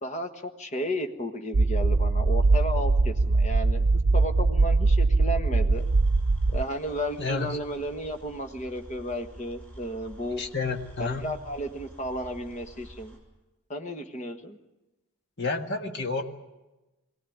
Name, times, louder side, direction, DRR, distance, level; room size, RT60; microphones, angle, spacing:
voice 1, 0.0-3.8 4.1-5.9 6.5-10.4 11.0-13.2 13.7-14.6, equal, 30° left, 6 dB, 1.4 m, -33 dB
sound 1, 1.5-6.6, right 3 dB, 90° right, 0.7 m, -22 dB
sound 2, 5.7-13.2, right 1 dB, 5° left, 5.8 m, -48 dB
voice 2, 7.2-7.6 10.4-11.3 15.4-16.2, left 4 dB, 50° left, 4 dB, 1.7 m, -30 dB
22.5 x 17.0 x 9.3 m, 1.1 s
head